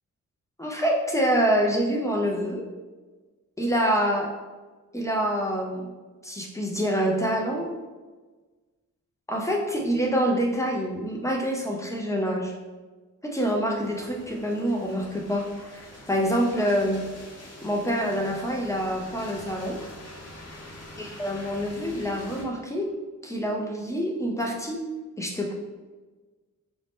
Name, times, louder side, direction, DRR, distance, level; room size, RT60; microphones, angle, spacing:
voice 1, 0.6-2.7 3.6-4.3 4.9-5.8 6.2-7.8 9.3-12.5 13.2-17.0 17.6-19.8 21.0-22.9 23.2-24.9 25.2-25.5, equal, 10° left, 0 dB, 0.5 m, -26 dB
sound 1, 13.7-22.4, left 1 dB, 50° left, 0.9 m, -45 dB
4.1 x 2.6 x 3.5 m, 1.3 s
wide cardioid pair, 145°, 33 cm